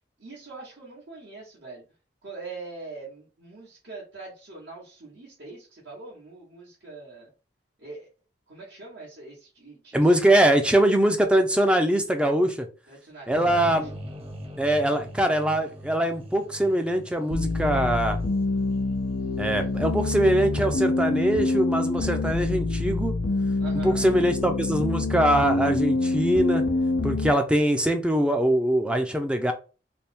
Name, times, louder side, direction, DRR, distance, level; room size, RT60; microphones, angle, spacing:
voice 1, 0.2-1.8 2.2-7.3 7.8-8.1 8.5-10.6 12.9-13.9 23.6-24.1, right 3 dB, 75° right, -7 dB, 1.5 m, -43 dB
voice 2, 9.9-12.7 13.3-13.9 14.6-18.2 19.4-23.1 23.8-26.6 27.0-29.5, right 1 dB, 5° right, 6 dB, 0.5 m, -22 dB
sound 1, 13.3-20.4, equal, 35° right, 0.9 m, -42 dB
sound 2, 17.3-27.3, left 2 dB, 90° left, 0.6 m, -26 dB
3.4 x 2.3 x 4.3 m, 0.34 s
head